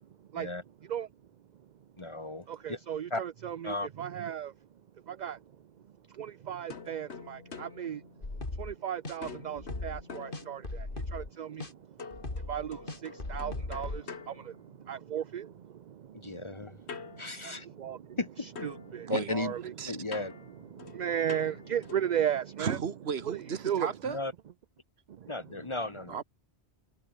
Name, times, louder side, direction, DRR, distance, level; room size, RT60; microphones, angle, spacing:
voice 1, 2.0-2.8 3.1-3.2 3.6-3.9 16.1-16.8 17.2-17.7 18.2-18.7 19.1-19.5 19.9-20.3 24.0-24.3 25.3-26.2, left 2 dB, 30° left, 1.2 m, -35 dB
voice 2, 2.6-4.5 5.2-5.4 6.5-8.0 8.6-10.6 11.1-11.5 12.5-12.7 13.3-14.0 14.9-15.4 17.8-18.0 18.4-19.7 21.0-22.8 23.2-23.4 23.6-23.9, right 9 dB, 50° right, 0.6 m, -34 dB
sound 1, 6.7-8.8 9.2-11.1 12.0-15.2 16.9-18.3 18.6-22.2, left 5 dB, 80° left, 1.9 m, -47 dB
sound 2, 8.2-8.7 9.0-9.2 9.6-10.0 10.3-11.3 11.6-11.7 12.1-14.0, left 2 dB, 55° left, 3.3 m, -38 dB
voice 3, 22.6-24.2 26.1-26.2, right 6 dB, 70° right, 1.4 m, -34 dB
omnidirectional pair, 1.1 m